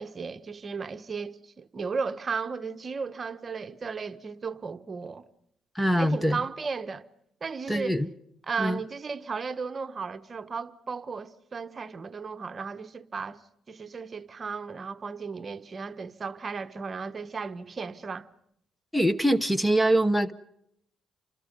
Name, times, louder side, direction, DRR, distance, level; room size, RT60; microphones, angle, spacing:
voice 1, 0.0-5.2 6.0-7.0 7.4-8.0 8.5-13.4 13.7-18.3, right 5 dB, 40° right, 1.2 m, -35 dB
voice 2, 5.7-6.4 7.7-8.1 8.6-8.8 18.9-20.3, right 1 dB, 5° left, 1.1 m, -23 dB
29.5 x 26.0 x 5.4 m
cardioid pair, 90°, 0 cm